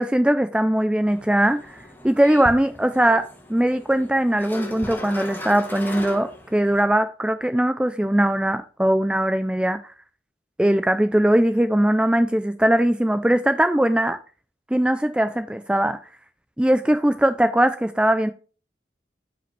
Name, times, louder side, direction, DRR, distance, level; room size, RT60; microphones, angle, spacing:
voice 1, 0.0-1.7 2.0-9.8 10.6-14.2 14.7-16.0 16.6-18.3, right 1 dB, 5° right, 0.3 m, -20 dB
sound 1, 1.1-6.8, left 1 dB, 10° left, 1.1 m, -38 dB
8.9 x 5.1 x 3.2 m
head